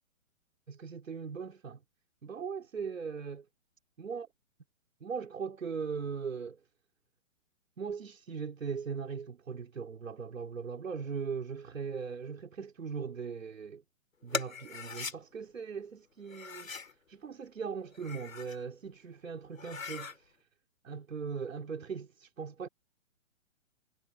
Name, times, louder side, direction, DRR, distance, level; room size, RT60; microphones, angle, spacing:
voice 1, 0.7-1.8 2.2-3.5 4.0-4.3 5.0-6.6 7.8-13.8 14.2-16.7 17.1-20.3 20.8-22.7, right 6 dB, 80° right, 4.4 m, -39 dB
sound 1, 14.3-15.2 16.3-16.9 17.8-18.6 19.0-19.1 19.5-20.2, left 5 dB, 90° left, 3.5 m, -40 dB
hypercardioid pair, 130°, 39 cm